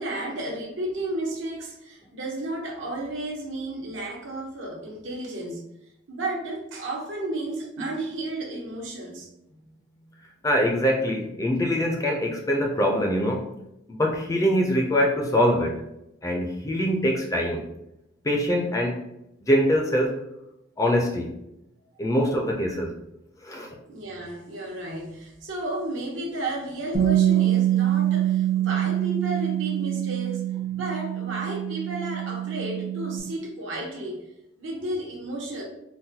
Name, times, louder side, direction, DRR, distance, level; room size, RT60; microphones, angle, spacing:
voice 1, 0.0-5.6 6.1-9.3 23.9-30.4 30.7-34.3 34.6-35.6, right 1 dB, 80° right, -2 dB, 0.9 m, -33 dB
voice 2, 10.4-13.5 13.9-15.8 16.2-17.6 18.2-19.0 19.4-20.2 20.8-21.3 22.0-22.9 23.4-23.7, equal, 15° left, 1 dB, 0.4 m, -23 dB
Bass guitar, 26.9-33.2, right 12 dB, 50° right, 0.8 m, -25 dB
3.8 x 2.2 x 2.7 m, 0.83 s
head